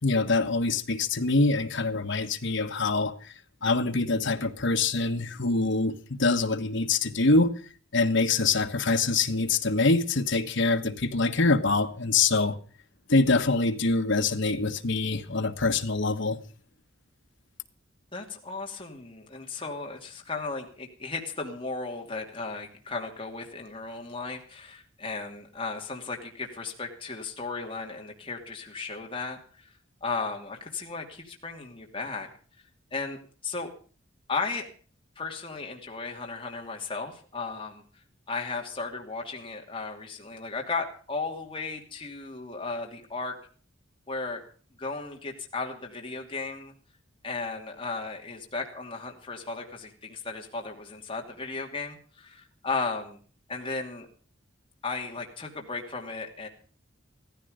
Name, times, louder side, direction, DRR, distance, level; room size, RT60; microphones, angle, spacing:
voice 1, 0.0-3.3 3.6-7.5 7.9-12.6 13.1-16.4, left 3 dB, 65° left, 1.4 m, -25 dB
voice 2, 18.1-29.7 30.0-32.3 32.9-33.7 34.3-34.7 35.2-37.8 38.3-43.3 44.1-44.4 44.8-46.7 47.2-53.2 53.5-54.1 54.8-56.5, left 4 dB, 25° left, 2.6 m, -35 dB
15.5 x 14.5 x 5.0 m
head